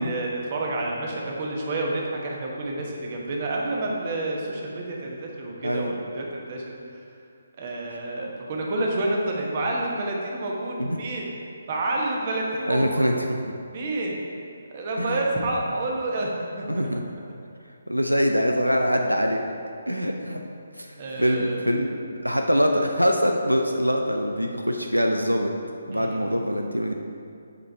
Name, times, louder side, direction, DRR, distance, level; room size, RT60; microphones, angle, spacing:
voice 1, 0.0-7.0 7.6-11.3 11.7-13.0 13.7-14.2 14.7-16.8 21.0-21.7 25.9-26.4, right 2 dB, 35° right, -1 dB, 1.2 m, -29 dB
voice 2, 5.6-6.0 10.8-11.0 12.7-13.1 13.4-13.5 15.0-15.2 16.7-17.0 17.9-19.4 19.9-20.4 20.8-25.5 25.9-26.9, equal, 90° right, 3 dB, 0.5 m, -24 dB
8.4 x 5.1 x 4.5 m, 2.4 s
figure-of-eight pair, 140°, 0 cm